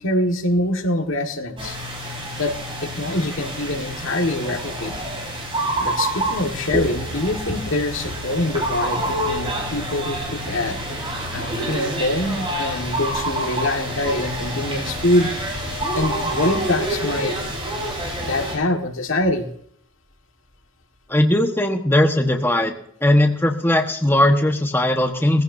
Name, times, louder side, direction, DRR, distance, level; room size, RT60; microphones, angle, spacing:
voice 1, 0.0-1.8 2.4-4.9 5.8-10.8 11.3-15.3 15.9-17.3 18.2-19.5, left 1 dB, 80° left, 5 dB, 1.7 m, -24 dB
sound 1, 1.6-18.5, right 1 dB, 25° right, 4.9 m, -27 dB
sound 2, 12.5-18.7 21.0-21.1 21.2-21.3, left 8 dB, 40° left, 2.0 m, -41 dB
voice 2, 21.1-22.7 23.0-25.4, left 1 dB, 10° left, 3 dB, 1.2 m, -18 dB
19.0 x 15.5 x 2.7 m, 0.65 s
head